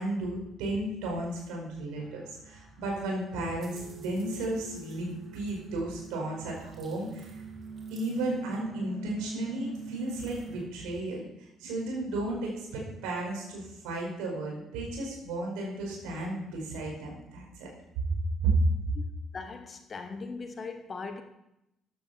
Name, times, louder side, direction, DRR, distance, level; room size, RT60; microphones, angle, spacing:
voice 1, 0.0-7.4 7.9-17.7 18.4-18.5, right 2 dB, 65° right, 4.9 m, -34 dB
sound 1, 2.0-10.7, right 5 dB, 40° right, 2.6 m, -44 dB
voice 2, 19.3-21.2, left 4 dB, 35° left, 1.4 m, -39 dB
14.5 x 11.5 x 4.3 m
figure-of-eight pair, 45°, 0 cm